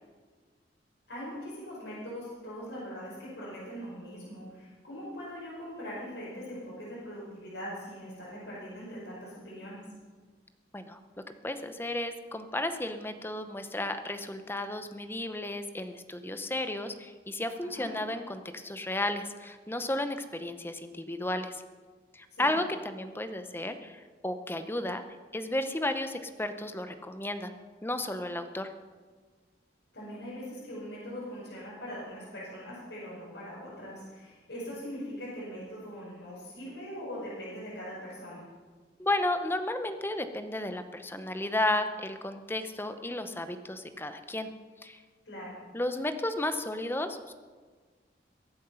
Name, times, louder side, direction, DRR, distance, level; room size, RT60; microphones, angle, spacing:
voice 1, 1.1-9.8 17.6-17.9 22.3-22.5 29.9-38.4 45.2-45.6, equal, 90° left, -10 dB, 5.4 m, -41 dB
voice 2, 11.4-21.6 22.1-25.0 25.3-27.5 27.8-28.7 39.0-44.5 44.8-45.0 45.7-47.3, left 1 dB, 15° left, 9 dB, 0.8 m, -33 dB
23.0 x 7.9 x 5.6 m, 1.5 s
head